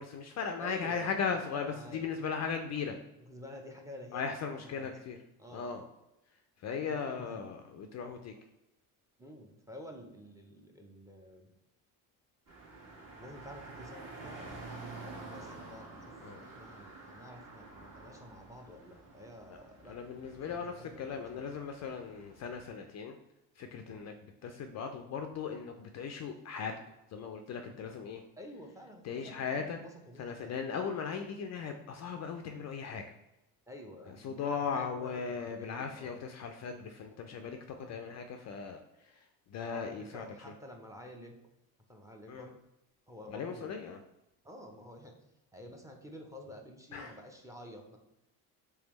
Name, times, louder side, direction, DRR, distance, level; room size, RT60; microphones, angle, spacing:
voice 1, 0.0-3.0 4.1-5.2 5.5-5.8 6.6-8.3 16.2-16.4 19.9-23.2 23.6-24.2 24.4-26.7 27.1-28.2 29.0-29.8 30.2-33.0 34.2-38.8 39.5-40.2 42.3-42.5 43.3-44.0 46.9-47.1, left 6 dB, 40° left, 5 dB, 0.4 m, -37 dB
voice 2, 0.6-1.1 1.5-2.0 3.2-4.9 5.4-5.7 6.7-7.4 9.2-11.5 13.2-14.5 14.9-16.1 16.4-21.4 23.8-24.1 28.4-30.5 33.7-36.2 37.8-38.0 39.6-41.3 41.9-42.5 43.1-43.8 44.4-45.2 45.5-48.0, equal, 5° right, 3 dB, 0.6 m, -50 dB
sound 1, 12.5-22.7, right 3 dB, 45° right, 1.4 m, -49 dB
3.4 x 3.3 x 3.0 m, 0.92 s
supercardioid pair, 75°, 45 cm